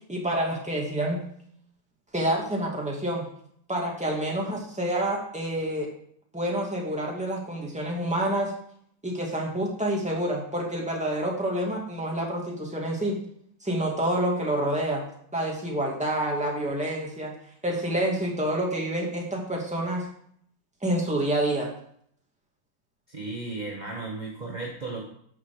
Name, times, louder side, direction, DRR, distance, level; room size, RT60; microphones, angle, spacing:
voice 1, 0.1-1.2 2.1-3.3 3.7-5.9 6.3-8.5 9.0-13.2 13.6-15.0 15.3-17.3 17.6-20.1 20.8-21.7, right 1 dB, 5° right, -2 dB, 2.2 m, -28 dB
voice 2, 23.1-25.0, right 3 dB, 20° right, -2 dB, 1.6 m, -35 dB
11.5 x 7.1 x 5.0 m, 0.66 s
omnidirectional pair, 2.3 m